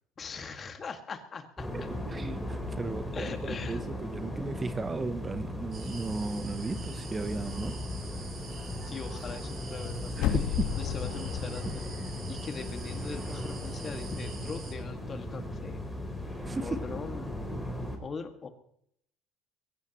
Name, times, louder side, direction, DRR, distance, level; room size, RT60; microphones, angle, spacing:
voice 1, 0.2-1.7 3.1-3.8 8.9-10.2 10.8-11.8 12.2-15.8 16.6-17.3 18.0-18.5, left 5 dB, 35° left, 6 dB, 1.9 m, -40 dB
sound 1, 1.6-18.0, left 1 dB, 5° left, 4.1 m, -37 dB
voice 2, 2.1-7.8 10.2-10.7 11.6-11.8 16.4-16.8, right 3 dB, 20° right, 11 dB, 0.8 m, -35 dB
sound 2, 5.7-14.7, right 4 dB, 40° right, 7.8 m, -46 dB
sound 3, 10.1-13.1 13.4-13.5, left 10 dB, 80° left, 1.5 m, -33 dB
22.5 x 16.0 x 3.0 m, 0.71 s
cardioid pair, 110°, 0 cm